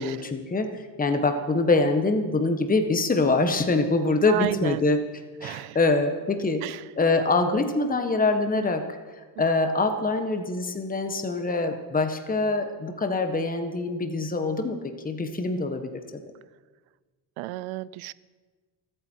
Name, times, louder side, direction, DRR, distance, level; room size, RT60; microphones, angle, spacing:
voice 1, 0.0-5.0 5.4-15.9, left 3 dB, 20° left, 6 dB, 1.4 m, -24 dB
voice 2, 4.3-4.8 5.4-5.8 6.6-6.8 17.4-18.1, right 18 dB, 85° right, 19 dB, 0.6 m, -31 dB
25.5 x 8.7 x 4.6 m, 1.4 s
cardioid pair, 95°, 47 cm